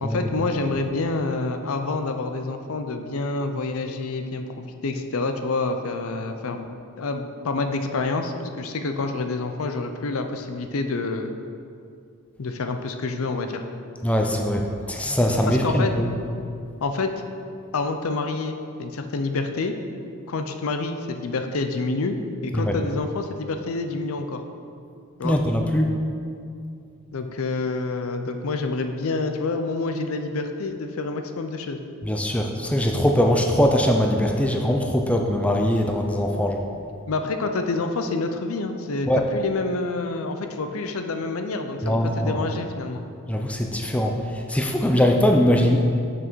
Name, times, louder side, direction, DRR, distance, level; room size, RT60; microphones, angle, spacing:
voice 1, 0.0-6.7 7.0-11.3 12.4-13.6 15.5-15.9 16.8-17.1 17.7-19.7 20.3-24.4 25.2-25.4 27.1-31.8 37.1-43.0, left 3 dB, 70° left, 6 dB, 0.5 m, -27 dB
voice 2, 14.0-16.1 22.6-22.7 25.2-25.9 32.0-36.6 39.1-39.2 41.8-42.4 43.3-44.1 44.5-45.8, equal, 5° left, 2 dB, 0.4 m, -21 dB
6.3 x 6.2 x 4.5 m, 2.5 s
head